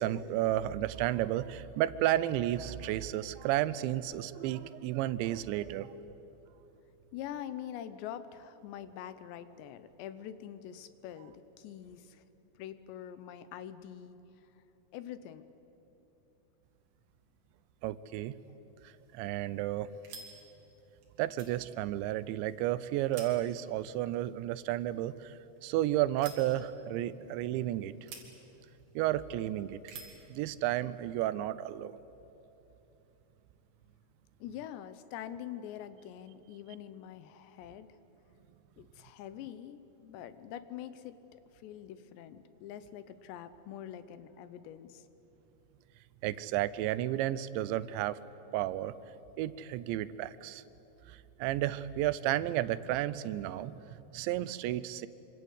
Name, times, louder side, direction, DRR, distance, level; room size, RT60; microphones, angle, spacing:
voice 1, 0.0-5.9 17.8-18.3 18.8-19.9 21.2-27.9 29.0-29.8 30.3-31.9 46.2-48.2 48.5-48.9 49.4-50.6 51.1-55.1, right 14 dB, 90° right, 16 dB, 3.0 m, -32 dB
voice 2, 7.1-12.2 12.6-14.2 14.9-15.4 34.4-37.9 38.8-45.1, left 10 dB, 80° left, 12 dB, 3.1 m, -45 dB
sound 1, 18.9-30.3, right 5 dB, 60° right, 4.8 m, -54 dB
25.5 x 25.5 x 8.2 m, 3.0 s
omnidirectional pair, 5.1 m